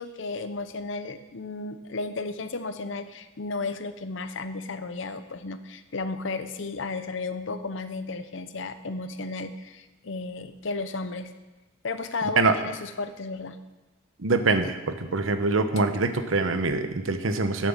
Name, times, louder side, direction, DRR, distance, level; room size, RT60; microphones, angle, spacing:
voice 1, 0.0-11.3 11.8-13.6, left 3 dB, 70° left, 11 dB, 0.7 m, -34 dB
voice 2, 14.2-17.7, right 3 dB, 90° right, 9 dB, 0.9 m, -24 dB
9.2 x 7.5 x 7.3 m, 1.1 s
head